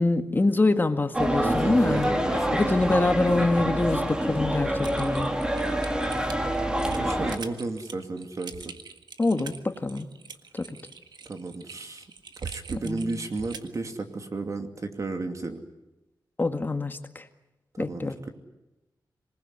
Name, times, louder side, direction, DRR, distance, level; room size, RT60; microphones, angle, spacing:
voice 1, 0.0-2.1 2.5-5.3 9.2-10.1 10.5-10.8 12.8-13.2 16.4-17.3 17.8-18.2, left 2 dB, 25° left, 7 dB, 1.8 m, -25 dB
sound 1, 1.1-7.4, right 1 dB, 10° right, 2.3 m, -26 dB
voice 2, 1.4-2.8 7.0-8.7 11.2-12.1 12.4-15.6 17.8-18.3, right 3 dB, 45° right, 6 dB, 2.7 m, -33 dB
Typing, 4.8-13.8, right 5 dB, 70° right, 1.7 m, -42 dB
26.5 x 20.0 x 9.7 m, 0.99 s
wide cardioid pair, 120°, 8 cm